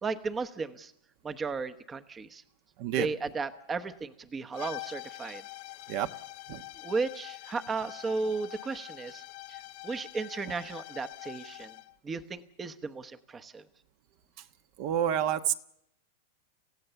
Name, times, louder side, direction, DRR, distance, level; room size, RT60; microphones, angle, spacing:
voice 1, 0.0-0.9 1.2-2.4 3.0-5.4 6.8-11.7 12.0-13.7, right 4 dB, 15° right, 9 dB, 1.0 m, -35 dB
sound 1, 4.5-12.0, left 20 dB, 60° left, 1.5 m, -45 dB
voice 2, 14.8-15.5, right 10 dB, 50° right, 8 dB, 1.2 m, -28 dB
28.0 x 15.5 x 7.0 m, 0.77 s
supercardioid pair, 140°, 0 cm